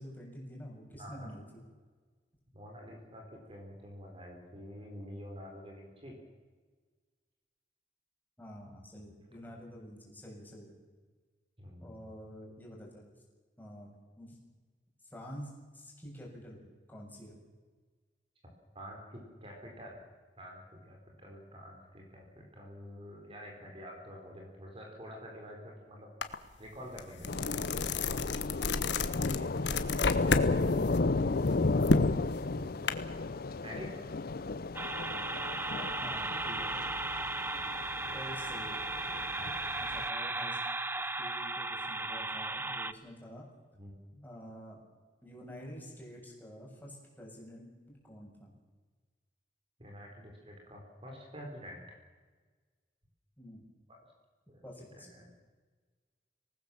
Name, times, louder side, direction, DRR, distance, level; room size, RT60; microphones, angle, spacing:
voice 1, 0.0-1.6 8.4-10.8 11.8-13.1 13.6-13.9 14.2-14.4 15.1-17.4 35.7-36.9 38.1-39.3 39.8-40.6 41.2-43.5 44.2-44.8 45.2-48.5 53.4-53.7 54.6-55.2, equal, 10° left, -2 dB, 7.1 m, -48 dB
voice 2, 0.9-1.3 2.5-6.1 11.6-12.0 18.7-20.0 20.4-26.1 26.6-27.6 28.9-31.2 32.5-33.0 33.6-34.0 38.0-38.1 39.3-39.8 43.7-44.0 49.8-51.8 53.9-54.0 54.5-55.3, equal, 30° right, 1 dB, 4.5 m, -48 dB
sound 1, 26.2-26.3 26.7-30.5 30.8-32.9, left 3 dB, 80° left, 1.4 m, -31 dB
Thunder / Rain, 27.3-40.1, left 3 dB, 60° left, 0.7 m, -33 dB
sound 2, 34.7-42.9, right 2 dB, 10° right, 0.7 m, -36 dB
26.0 x 19.5 x 7.3 m, 1.4 s
head